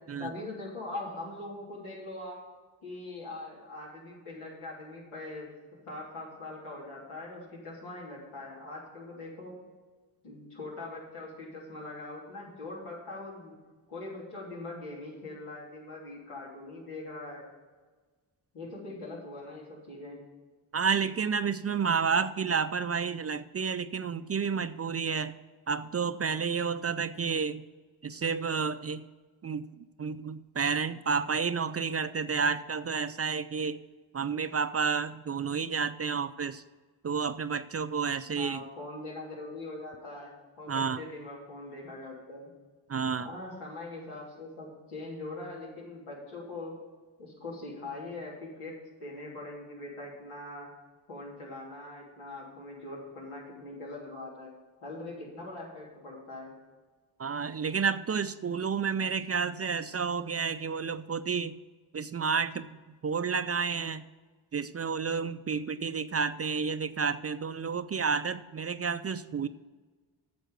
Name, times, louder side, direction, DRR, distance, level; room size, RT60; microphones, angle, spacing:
voice 1, 0.2-2.4 2.8-5.5 5.9-9.6 10.2-13.6 13.9-17.5 18.5-20.2 38.3-42.5 43.2-46.8 47.2-48.7 49.0-50.7 51.1-54.5 54.8-56.6, left 2 dB, 90° left, -4 dB, 3.4 m, -42 dB
voice 2, 20.7-25.4 25.7-27.7 28.0-29.1 29.4-29.7 30.0-33.8 34.1-36.6 37.0-38.6 40.7-41.0 42.9-43.3 57.2-61.6 61.9-64.1 64.5-69.5, right 5 dB, 30° right, 13 dB, 0.4 m, -30 dB
9.3 x 6.8 x 6.6 m, 1.4 s
cardioid pair, 60°, 49 cm